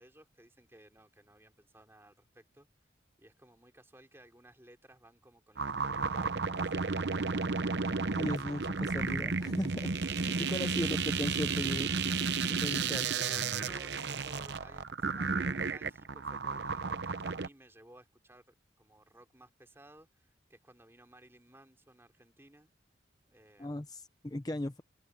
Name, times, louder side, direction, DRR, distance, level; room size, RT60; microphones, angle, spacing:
voice 1, 0.0-2.7 3.2-7.5 10.0-10.2 10.7-11.0 12.9-18.5 18.8-22.7 23.3-23.9, right 1 dB, 15° right, 2.9 m, -58 dB
grainulated awesomeness, 5.6-17.5, right 4 dB, 60° right, 0.8 m, -33 dB
voice 2, 8.1-9.9 10.3-12.1 12.6-13.1 23.6-24.8, left 1 dB, 20° left, 0.6 m, -37 dB
open air
head